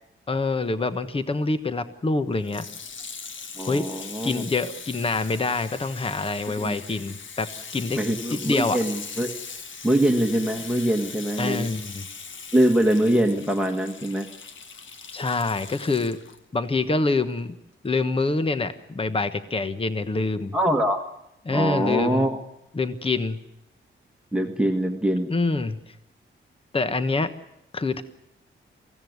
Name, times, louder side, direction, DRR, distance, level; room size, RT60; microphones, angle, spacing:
voice 1, 0.3-2.7 3.6-3.9 4.2-8.0 8.3-8.8 11.4-12.1 15.1-16.2 16.5-17.6 17.8-20.5 21.4-22.3 22.7-23.4 25.3-25.9 26.7-27.3 27.7-28.0, left 3 dB, 25° left, 11 dB, 1.2 m, -26 dB
Water tap faucet / Sink (filling or washing), 2.4-16.4 17.1-17.2, left 5 dB, 65° left, 1.7 m, -40 dB
voice 2, 3.6-4.4 6.6-6.8 8.0-9.3 9.8-11.7 12.5-14.3 20.5-21.0 21.5-22.4 24.3-25.3, right 1 dB, 5° right, 2 dB, 1.6 m, -23 dB
24.0 x 16.5 x 9.5 m, 0.86 s
wide cardioid pair, 125°, 21 cm